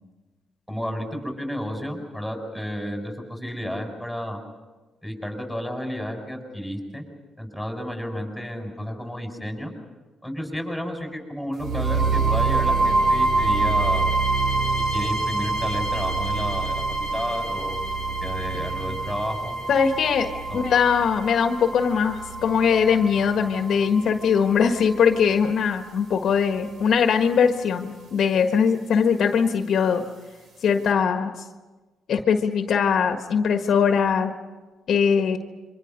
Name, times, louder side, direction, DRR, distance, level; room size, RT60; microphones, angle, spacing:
voice 1, 0.7-4.4 5.0-7.0 7.4-9.7 10.2-14.1 14.9-17.8 18.2-19.6 20.5-20.6, equal, 5° right, 2 dB, 6.6 m, -32 dB
sound 1, 11.6-25.6, right 3 dB, 60° right, 3.4 m, -26 dB
voice 2, 19.7-30.0 30.6-31.3 32.1-34.3 34.9-35.4, left 6 dB, 65° left, 6 dB, 1.5 m, -21 dB
27.5 x 24.5 x 5.4 m, 1.3 s
cardioid pair, 90°, 0 cm